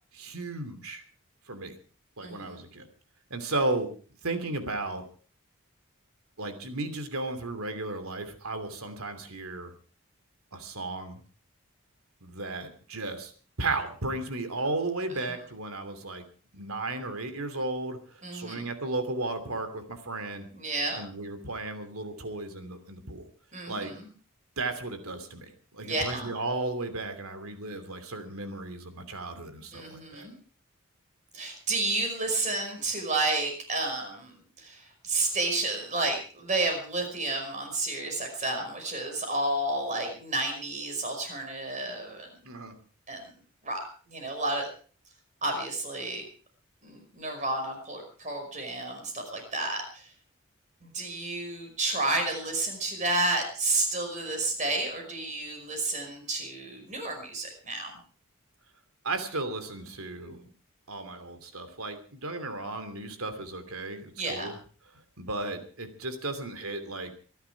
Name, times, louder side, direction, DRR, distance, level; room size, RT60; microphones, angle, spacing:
voice 1, 0.2-1.0 1.5-1.7 2.2-2.9 3.3-3.9 4.2-5.0 6.4-9.7 10.5-11.2 12.2-13.3 13.6-16.2 16.5-18.0 18.3-20.5 21.0-23.2 23.7-23.9 24.6-25.5 25.7-30.3 42.4-42.7 59.0-60.5 60.9-64.5 65.2-67.1, right 2 dB, 85° right, 9 dB, 2.9 m, -34 dB
voice 2, 2.2-2.6 15.2-15.4 18.2-18.7 20.5-21.0 23.5-24.1 25.8-26.3 29.7-30.3 31.3-42.3 43.1-43.3 43.6-43.8 44.1-44.7 45.4-46.2 46.8-50.1 50.8-57.9 64.2-64.5, right 2 dB, 35° right, 4 dB, 5.4 m, -31 dB
24.5 x 11.5 x 4.7 m, 0.40 s
head